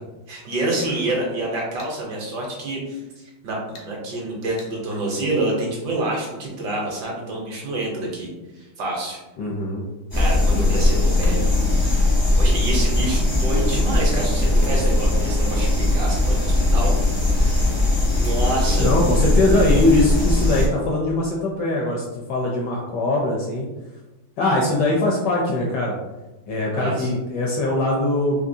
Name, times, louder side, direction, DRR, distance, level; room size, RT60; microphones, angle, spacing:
voice 1, 0.3-9.2 10.1-11.5 11.7-17.7 18.0-18.9 26.7-27.1, right 2 dB, 65° right, -2 dB, 1.2 m, -28 dB
sound 1, 1.8-2.0 3.7-3.9 4.6-4.7, left 3 dB, 90° left, 1.6 m, -43 dB
voice 2, 9.4-9.8 10.6-10.9 18.8-23.7 24.4-26.0 26.5-28.4, left 2 dB, 75° left, -1 dB, 1.0 m, -21 dB
sound 2, 10.1-20.7, left 1 dB, 30° left, 0.4 m, -19 dB
3.7 x 2.8 x 2.6 m, 1.1 s
omnidirectional pair, 2.3 m